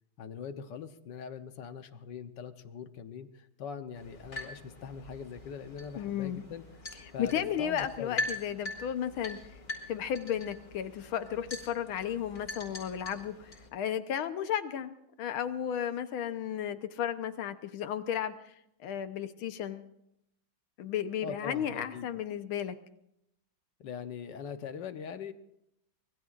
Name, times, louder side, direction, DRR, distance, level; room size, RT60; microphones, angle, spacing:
voice 1, 0.2-6.6 7.1-8.3 21.2-22.1 23.8-25.3, left 6 dB, 65° left, 9 dB, 1.5 m, -42 dB
sound 1, 3.9-13.7, left 2 dB, 40° left, 4.8 m, -42 dB
voice 2, 6.0-6.4 7.2-9.4 9.9-14.9 15.2-18.4 18.8-19.9 20.8-22.8, left 9 dB, 85° left, 10 dB, 1.8 m, -34 dB
25.0 x 21.5 x 2.5 m, 0.78 s
omnidirectional pair, 2.2 m